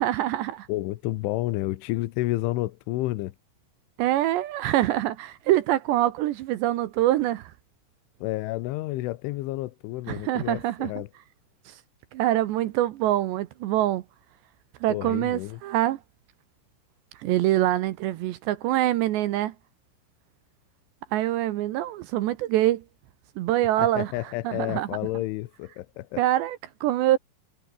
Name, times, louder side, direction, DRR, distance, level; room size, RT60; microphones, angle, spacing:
voice 1, 0.0-0.7 4.0-7.5 10.1-10.9 12.1-14.0 14.8-16.0 17.2-19.5 21.1-22.8 23.4-24.1 24.4-24.9 26.2-27.2, right 14 dB, 75° right, 3.0 m, -24 dB
voice 2, 0.7-3.3 8.2-11.1 14.9-15.6 23.8-26.2, left 17 dB, 90° left, 3.4 m, -30 dB
omnidirectional pair, 5.6 m